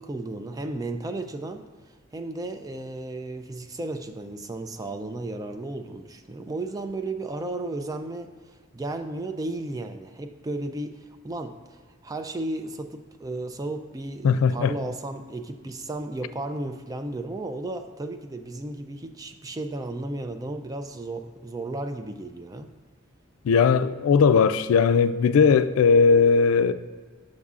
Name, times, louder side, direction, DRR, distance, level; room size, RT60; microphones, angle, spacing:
voice 1, 0.0-22.7, right 2 dB, 20° right, 0.3 m, -34 dB
voice 2, 14.2-14.7 23.4-26.7, left 5 dB, 90° left, 0.3 m, -18 dB
8.1 x 6.3 x 2.4 m
head